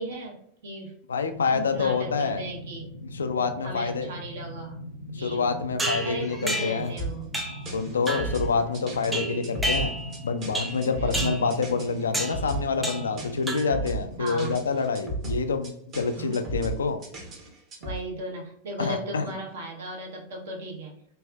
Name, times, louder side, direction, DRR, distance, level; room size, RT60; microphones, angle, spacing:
voice 1, 0.0-0.9 1.5-2.9 3.6-4.8 5.2-5.6 6.0-7.3 10.9-11.3 14.2-14.6 16.1-16.3 17.8-21.0, right 2 dB, 60° right, -1 dB, 0.9 m, -36 dB
voice 2, 1.1-2.4 3.0-4.2 5.1-6.9 7.7-9.9 10.2-17.0 18.8-19.3, left 5 dB, 70° left, 8 dB, 0.3 m, -27 dB
sound 1, 1.3-14.7, left 1 dB, 85° right, 0.5 m, -41 dB
sound 2, 5.8-6.9 7.3-7.7 8.1-8.4 9.1-10.2 10.5-10.8 11.1-11.5 12.1-12.4 12.8-13.2 13.5-13.9, right 1 dB, 5° right, 0.5 m, -30 dB
sound 3, 7.0-18.0, right 2 dB, 35° right, 0.9 m, -35 dB
3.2 x 2.6 x 2.2 m, 0.69 s
figure-of-eight pair, 90°, 0 cm